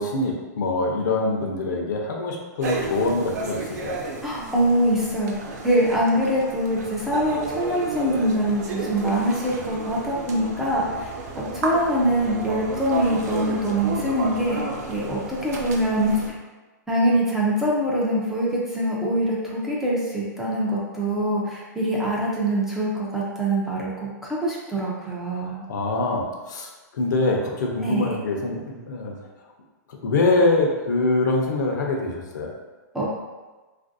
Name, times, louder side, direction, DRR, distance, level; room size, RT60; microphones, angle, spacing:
voice 1, 0.0-4.0 25.7-26.7 26.9-29.1 30.0-32.5, left 2 dB, 85° left, 1 dB, 0.6 m, -24 dB
sound 1, 2.6-16.3, right 3 dB, 60° right, 0.5 m, -32 dB
voice 2, 4.2-5.3 5.6-11.1 11.5-14.6 14.9-16.1 16.9-24.1 24.4-25.6 27.8-28.1 32.9-33.1, right 1 dB, 5° right, -5 dB, 0.4 m, -24 dB
3.1 x 2.5 x 2.5 m, 1.2 s
hypercardioid pair, 160°, 10 cm